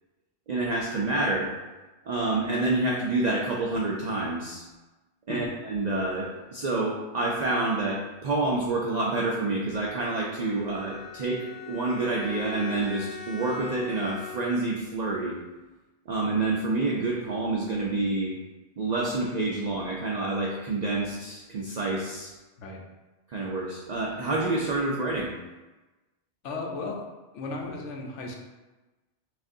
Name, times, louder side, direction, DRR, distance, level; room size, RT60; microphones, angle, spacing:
voice 1, 0.5-1.5 2.0-4.6 5.3-15.4 16.1-18.3 18.8-22.3 23.3-25.3, right 2 dB, 55° right, -3 dB, 0.5 m, -28 dB
Bowed string instrument, 10.3-14.8, left 5 dB, 60° left, 0.8 m, -41 dB
voice 2, 26.4-27.0 27.3-28.4, left 3 dB, 85° left, 1 dB, 1.0 m, -35 dB
5.9 x 2.5 x 2.6 m, 1.1 s
omnidirectional pair, 1.2 m